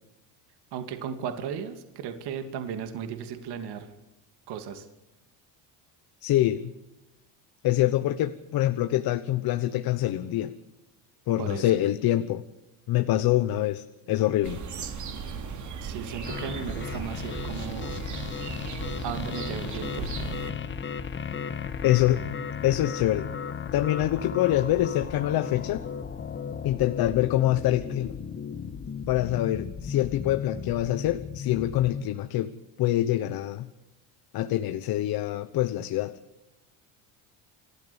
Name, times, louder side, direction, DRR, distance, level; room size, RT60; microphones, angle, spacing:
voice 1, 0.7-3.9 4.5-4.9 11.4-11.7 15.8-17.9 19.0-20.1, right 8 dB, 65° right, 7 dB, 2.7 m, -35 dB
voice 2, 6.2-6.7 7.6-10.5 11.3-12.4 12.9-14.6 21.8-22.2 22.6-23.3 23.7-25.8 26.6-28.1 29.1-32.5 32.8-33.7 34.3-36.1, left 14 dB, 55° left, 11 dB, 1.2 m, -25 dB
sound 1, 14.4-20.5, right 5 dB, 45° right, 3.6 m, -36 dB
sound 2, 16.2-32.0, left 6 dB, 25° left, 1.4 m, -35 dB
29.0 x 13.5 x 7.2 m, 0.96 s
cardioid pair, 125°, 43 cm